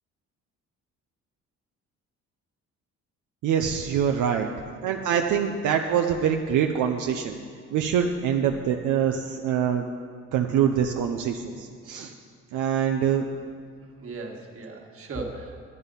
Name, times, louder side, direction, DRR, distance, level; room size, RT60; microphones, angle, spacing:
voice 1, 3.4-4.5 4.8-7.4 7.7-9.9 10.3-12.1 12.5-13.3, right 8 dB, 80° right, 3 dB, 0.6 m, -24 dB
voice 2, 13.8-15.6, right 3 dB, 45° right, 1 dB, 1.8 m, -37 dB
11.0 x 8.9 x 5.4 m, 2.2 s
cardioid pair, 90°, 30 cm